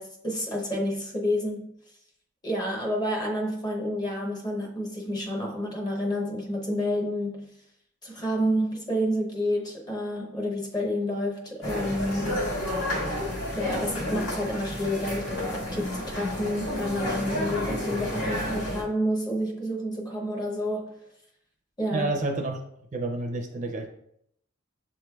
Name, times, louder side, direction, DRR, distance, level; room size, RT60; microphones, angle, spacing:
voice 1, 0.0-1.7 2.4-7.5 8.0-12.4 13.6-20.9 21.8-22.1, equal, 20° left, 0.7 m, -29 dB
sound 1, 11.6-18.8, left 1 dB, 65° left, 1.6 m, -31 dB
voice 2, 21.9-22.6 22.9-23.9, right 2 dB, 35° right, 0.5 m, -29 dB
7.1 x 3.1 x 2.3 m
head